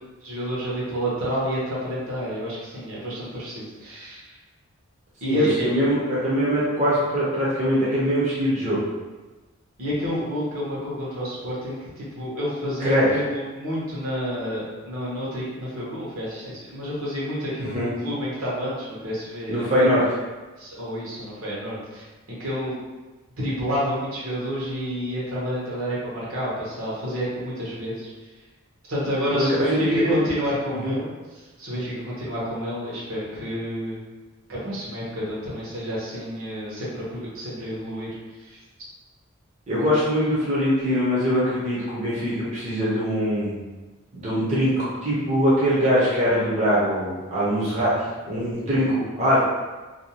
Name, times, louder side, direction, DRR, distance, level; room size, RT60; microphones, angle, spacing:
voice 1, 0.2-4.2 5.2-5.8 9.8-19.9 20.6-22.8 23.4-28.1 28.9-34.0 34.5-38.1 38.4-38.6, equal, 80° right, -6 dB, 0.9 m, -29 dB
voice 2, 5.3-8.8 12.8-13.0 17.6-17.9 19.5-20.0 29.3-30.2 30.8-30.9 39.7-43.6 44.1-47.9 48.3-49.4, equal, 35° right, -8 dB, 0.6 m, -22 dB
2.6 x 2.2 x 2.8 m, 1.2 s
head